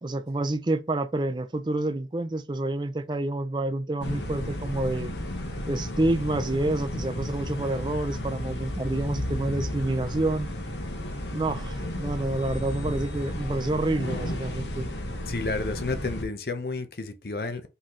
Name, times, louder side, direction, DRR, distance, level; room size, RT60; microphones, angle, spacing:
voice 1, 0.0-5.1 5.7-10.5 11.3-14.9, right 2 dB, 25° right, 0.4 m, -28 dB
sound 1, 4.0-16.2, left 1 dB, 80° left, 1.1 m, -33 dB
voice 2, 15.3-17.7, left 3 dB, 60° left, 0.7 m, -31 dB
4.0 x 3.9 x 3.1 m
head